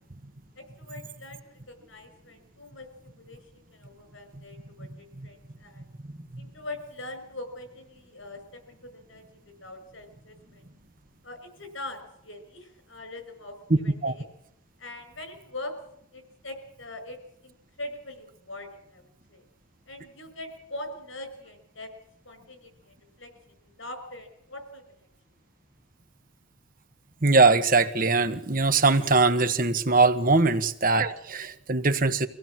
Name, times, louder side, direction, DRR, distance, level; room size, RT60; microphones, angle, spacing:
voice 1, 0.6-5.8 6.4-10.6 11.2-14.2 14.8-15.7 16.1-19.0 19.3-19.4 19.9-21.9 22.2-23.3 23.6-25.1, left 2 dB, 75° left, 8 dB, 6.0 m, -42 dB
voice 2, 27.2-32.3, right 3 dB, 45° right, 9 dB, 1.2 m, -21 dB
25.0 x 16.5 x 7.5 m, 0.73 s
head